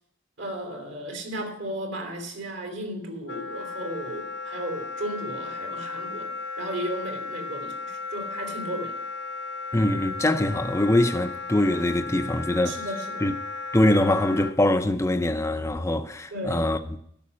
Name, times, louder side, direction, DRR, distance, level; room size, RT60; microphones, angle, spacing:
voice 1, 0.4-6.3 6.6-9.0 12.6-13.2 16.3-16.7, right 1 dB, 65° right, 3.0 m, -34 dB
Wind instrument woodwind instrument, 3.3-14.5, left 4 dB, 60° left, 0.6 m, -35 dB
voice 2, 9.7-12.8 13.2-13.3 13.7-17.0, left 1 dB, 15° left, 0.6 m, -23 dB
12.5 x 6.0 x 8.5 m
head